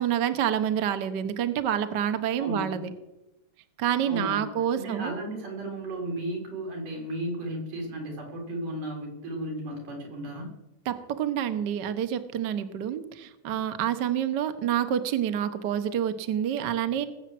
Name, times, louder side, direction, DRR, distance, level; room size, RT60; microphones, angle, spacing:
voice 1, 0.0-2.9 3.8-5.2 10.8-17.1, right 9 dB, 65° right, 9 dB, 1.1 m, -28 dB
voice 2, 2.4-2.8 4.1-4.5 4.7-10.5, right 1 dB, 85° right, 1 dB, 5.8 m, -34 dB
19.5 x 8.3 x 7.7 m, 0.95 s
omnidirectional pair, 3.6 m